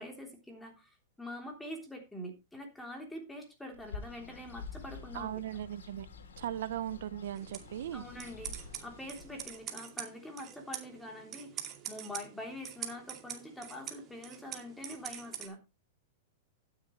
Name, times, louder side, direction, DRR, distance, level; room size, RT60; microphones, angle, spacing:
voice 1, 0.0-5.4 7.9-15.6, left 1 dB, 5° left, 2 dB, 3.3 m, -45 dB
Bird, 3.7-9.6, left 4 dB, 90° left, 3.3 m, -48 dB
voice 2, 5.1-6.1 6.4-8.0, right 11 dB, 70° right, 15 dB, 0.9 m, -38 dB
sound 1, 7.4-15.5, right 9 dB, 30° right, 2.3 m, -45 dB
12.0 x 9.7 x 3.2 m, 0.24 s
hypercardioid pair, 140°, 0 cm